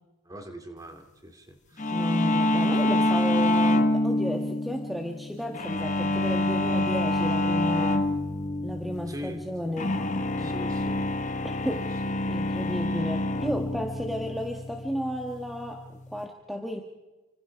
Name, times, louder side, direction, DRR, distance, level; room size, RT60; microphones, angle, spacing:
voice 1, 0.2-2.1 9.1-9.5 10.4-11.1 11.8-12.2, equal, 15° right, 5 dB, 2.7 m, -42 dB
sound 1, 1.8-16.2, left 1 dB, 35° left, 1.2 m, -27 dB
voice 2, 1.9-8.1 8.6-10.0 10.3-10.6 11.4-11.9 12.3-16.8, equal, ahead, 1 dB, 1.7 m, -33 dB
30.0 x 26.0 x 4.7 m, 1.1 s
head